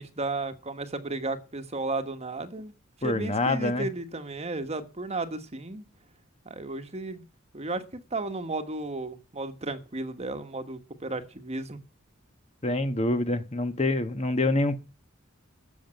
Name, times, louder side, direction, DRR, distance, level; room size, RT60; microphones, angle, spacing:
voice 1, 0.0-2.7 3.0-5.8 6.4-7.2 7.5-11.8, right 2 dB, 30° right, 1.5 m, -34 dB
voice 2, 3.0-3.9 12.6-14.8, left 2 dB, 30° left, 1.3 m, -26 dB
14.0 x 7.2 x 9.1 m
head